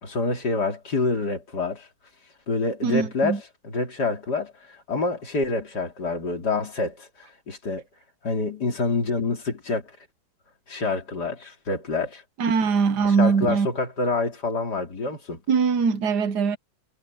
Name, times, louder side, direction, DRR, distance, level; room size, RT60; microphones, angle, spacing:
voice 1, 0.0-1.9 2.5-3.4 3.6-7.8 8.2-9.9 10.7-12.2 13.0-15.4, left 3 dB, 80° left, 3.8 m, -27 dB
voice 2, 2.8-3.4 12.4-13.7 15.5-16.6, right 5 dB, 85° right, 1.7 m, -22 dB
omnidirectional pair, 1.7 m